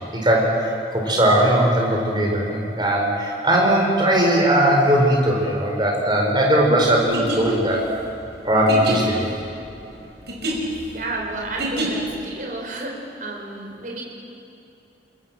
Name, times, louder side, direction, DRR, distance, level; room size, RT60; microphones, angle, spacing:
voice 1, 0.1-7.8 8.4-9.3, right 1 dB, 25° right, -1 dB, 5.1 m, -19 dB
sound 1, 7.1-12.2, right 1 dB, 70° right, 5.5 m, -29 dB
voice 2, 10.9-12.9 13.2-14.0, right 2 dB, 50° right, 0 dB, 5.0 m, -31 dB
29.0 x 20.5 x 7.6 m, 2.8 s
head